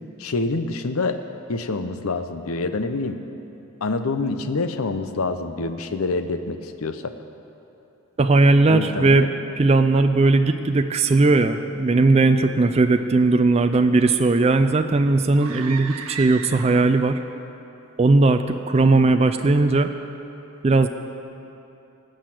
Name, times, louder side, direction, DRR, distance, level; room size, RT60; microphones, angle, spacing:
voice 1, 0.2-1.2 1.5-3.2 3.8-7.1 8.7-9.3, left 3 dB, 80° left, 9 dB, 0.7 m, -26 dB
voice 2, 8.2-9.3 9.6-17.2 18.0-19.9 20.6-20.9, right 3 dB, 30° right, 8 dB, 0.4 m, -18 dB
sound 1, 15.3-17.1, right 6 dB, 80° right, 0.9 m, -35 dB
18.0 x 6.5 x 7.8 m, 2.8 s
head